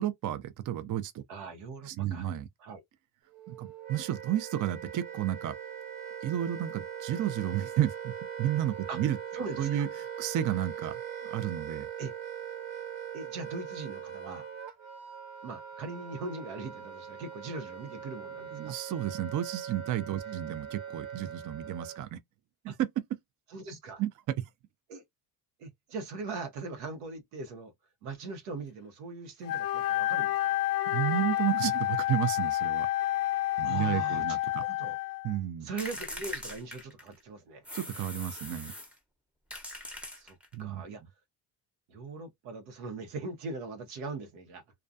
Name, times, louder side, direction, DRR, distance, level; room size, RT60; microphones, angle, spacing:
voice 1, 0.0-1.2 1.8-2.5 3.5-5.5 6.2-9.2 9.6-9.9 10.2-11.9 18.5-22.2 22.6-22.9 24.0-24.4 30.9-32.9 33.6-34.6 35.2-35.7 37.7-38.7 40.5-40.8, right 12 dB, 40° right, 0.5 m, -32 dB
voice 2, 1.3-2.3 2.6-2.8 8.9-9.0 9.3-9.9 12.0-12.1 13.1-14.5 15.4-18.8 20.2-20.4 22.7-22.8 23.5-24.0 24.9-25.0 25.6-27.7 28.0-30.5 33.6-35.0 35.6-37.6 40.2-41.0 41.9-44.6, right 3 dB, 85° right, 0.9 m, -40 dB
Wind instrument woodwind instrument, 3.3-22.1, right 8 dB, 70° right, 1.3 m, -41 dB
Wind instrument woodwind instrument 2, 29.4-35.4, left 15 dB, 45° left, 0.5 m, -29 dB
sound 1, 35.8-37.2 37.6-39.0 39.5-40.6, left 1 dB, 5° right, 0.8 m, -41 dB
2.3 x 2.3 x 2.6 m
supercardioid pair, 70°, 47 cm